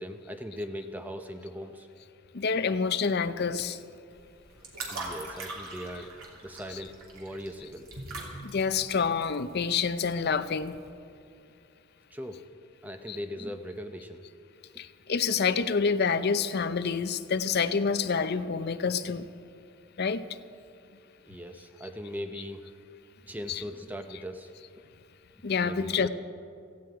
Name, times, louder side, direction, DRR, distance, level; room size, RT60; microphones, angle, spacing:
voice 1, 0.0-2.4 4.5-6.2 6.4-7.9 12.1-12.4 12.8-14.2 21.3-22.7 23.2-24.5 25.6-26.1, equal, 5° right, 6 dB, 0.6 m, -40 dB
voice 2, 2.3-3.8 6.7-6.8 8.4-10.8 13.1-13.2 14.8-19.3 20.0-20.3 23.5-23.6 25.4-26.1, left 5 dB, 45° left, 12 dB, 0.5 m, -28 dB
sound 1, 4.1-10.9, right 2 dB, 80° right, 2.9 m, -42 dB
17.0 x 14.5 x 4.8 m, 2.5 s
head